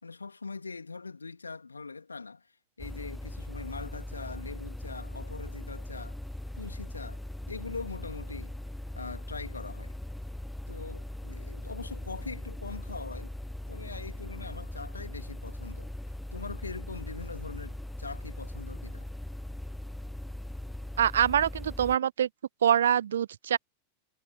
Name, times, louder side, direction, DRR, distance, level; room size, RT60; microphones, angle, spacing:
voice 1, 0.0-2.5 2.8-6.2 6.6-8.6 9.0-9.9 10.7-13.3 13.7-15.9 16.3-19.1, left 4 dB, 80° left, 2.4 m, -42 dB
sound 1, 2.8-22.0, left 1 dB, 5° left, 0.6 m, -40 dB
voice 2, 21.0-22.3 22.6-23.6, right 9 dB, 65° right, 0.5 m, -24 dB
figure-of-eight pair, 90°, 0 cm